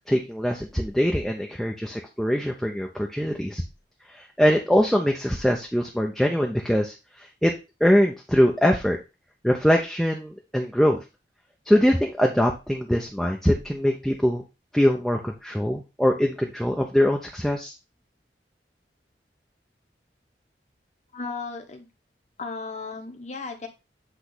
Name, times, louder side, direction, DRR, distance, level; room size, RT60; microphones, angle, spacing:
voice 1, 0.1-3.6 4.1-7.5 7.8-9.0 9.4-11.0 11.7-14.4 14.7-17.7, equal, ahead, 1 dB, 0.6 m, -23 dB
voice 2, 21.1-21.9 22.4-23.7, left 4 dB, 40° left, 4 dB, 1.1 m, -35 dB
8.2 x 3.2 x 3.9 m, 0.27 s
head